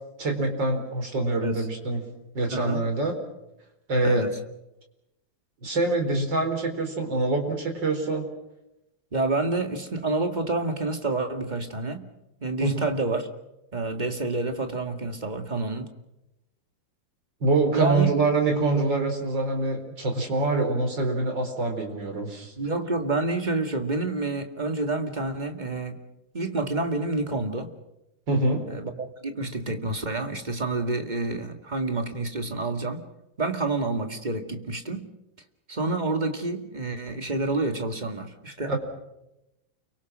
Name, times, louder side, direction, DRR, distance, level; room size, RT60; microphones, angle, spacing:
voice 1, 0.2-2.0 2.3-3.2 3.9-4.2 5.6-8.3 12.6-12.9 17.4-22.5 28.3-28.6 38.7-38.8, right 3 dB, 70° right, 3 dB, 5.1 m, -25 dB
voice 2, 2.5-2.8 4.0-4.4 9.1-12.1 12.4-13.3 13.7-15.9 17.7-18.1 22.6-26.0 26.3-27.7 28.7-33.0 33.4-35.1 35.7-38.7, right 2 dB, 25° right, 6 dB, 2.0 m, -28 dB
29.5 x 24.0 x 6.2 m, 0.92 s
omnidirectional pair, 2.1 m